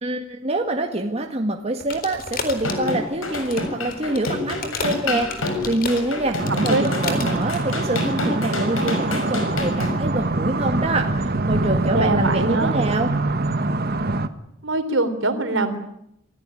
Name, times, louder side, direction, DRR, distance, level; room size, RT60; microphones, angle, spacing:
voice 1, 0.0-13.2, right 2 dB, 30° right, 3 dB, 1.9 m, -26 dB
sound 1, 1.8-7.7, left 4 dB, 45° left, 4.1 m, -34 dB
sound 2, 2.5-9.9, left 2 dB, 85° left, 5.8 m, -27 dB
sound 3, 6.4-14.3, right 2 dB, 50° right, 1.4 m, -24 dB
voice 2, 11.9-12.7 14.6-15.8, right 2 dB, 65° right, 8 dB, 3.6 m, -22 dB
27.0 x 16.0 x 10.0 m, 0.78 s
head